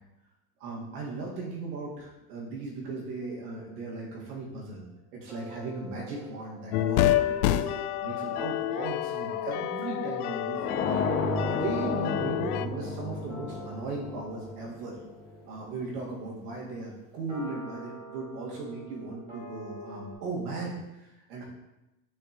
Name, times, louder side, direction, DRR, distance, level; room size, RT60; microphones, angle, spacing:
voice 1, 0.6-4.8 5.1-7.7 8.0-10.7 11.1-15.0 15.4-21.4, right 3 dB, 75° right, -3 dB, 1.9 m, -37 dB
sound 1, 3.2-4.5 5.3-20.1, right 1 dB, 15° right, 2.0 m, -49 dB
sound 2, 6.7-12.7, left 12 dB, 70° left, 0.5 m, -29 dB
sound 3, 10.6-15.3, left 3 dB, 20° left, 0.6 m, -32 dB
11.0 x 3.9 x 3.0 m, 0.95 s
supercardioid pair, 165°, 47 cm